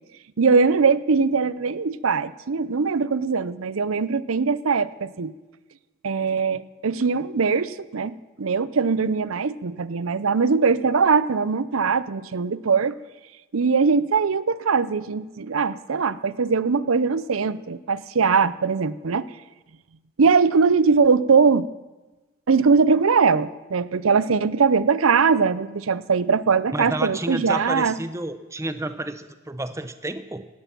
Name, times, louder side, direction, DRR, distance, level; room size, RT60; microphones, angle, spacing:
voice 1, 0.4-5.3 6.0-12.9 13.5-19.2 20.2-21.7 22.5-28.0, right 5 dB, 85° right, 17 dB, 0.6 m, -21 dB
voice 2, 26.7-30.5, right 2 dB, 15° right, 11 dB, 0.7 m, -30 dB
17.5 x 12.5 x 6.0 m, 1.2 s
head